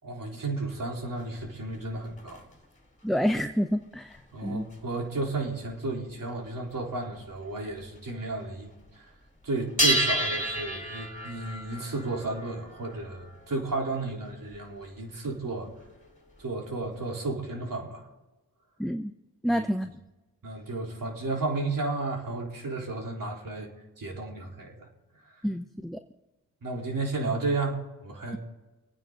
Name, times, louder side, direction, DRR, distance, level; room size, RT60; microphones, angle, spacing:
voice 1, 0.0-2.4 4.3-9.1 9.4-15.7 16.4-18.1 19.5-19.7 20.4-23.7 24.0-24.9 25.2-25.4 26.6-28.4, right 2 dB, 45° right, 0 dB, 3.9 m, -33 dB
sound 1, 0.7-2.7 3.2-4.9 5.5-5.9 6.3-6.4 6.7-6.8 7.0-8.1 8.4-9.0 9.3-17.2, right 1 dB, 15° left, 3.7 m, -33 dB
voice 2, 3.0-4.7 18.8-19.1 19.4-19.9 25.4-26.0, equal, ahead, 7 dB, 0.7 m, -28 dB
25.0 x 9.1 x 4.0 m, 1.1 s
supercardioid pair, 50°, 44 cm